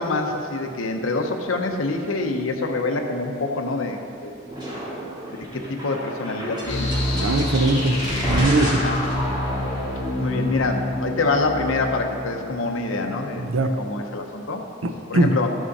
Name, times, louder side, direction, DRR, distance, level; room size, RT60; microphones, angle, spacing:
voice 1, 0.0-4.3 5.3-7.1 8.6-9.0 10.2-13.5 13.8-14.6 15.1-15.6, left 3 dB, 80° left, 4 dB, 0.9 m, -26 dB
sound 1, 4.5-10.9, equal, 20° right, 2.2 m, -31 dB
sound 2, 6.6-13.4, left 1 dB, 30° left, 1.8 m, -27 dB
voice 2, 7.2-8.0 8.3-8.8 13.4-13.7 14.8-15.3, right 2 dB, 80° right, 7 dB, 0.6 m, -21 dB
13.5 x 6.1 x 4.1 m, 2.8 s
head